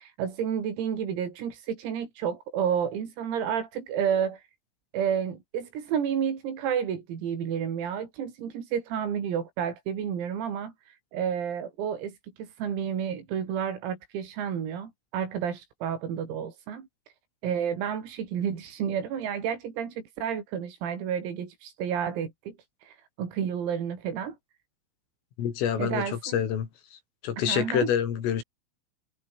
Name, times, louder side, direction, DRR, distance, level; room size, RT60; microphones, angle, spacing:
voice 1, 0.0-4.4 4.9-16.9 17.4-22.6 22.8-24.4 25.8-26.4 27.5-27.9, right 8 dB, 85° right, 7.0 m, -31 dB
voice 2, 25.4-28.4, left 9 dB, 75° left, 6.1 m, -28 dB
omnidirectional pair, 6.0 m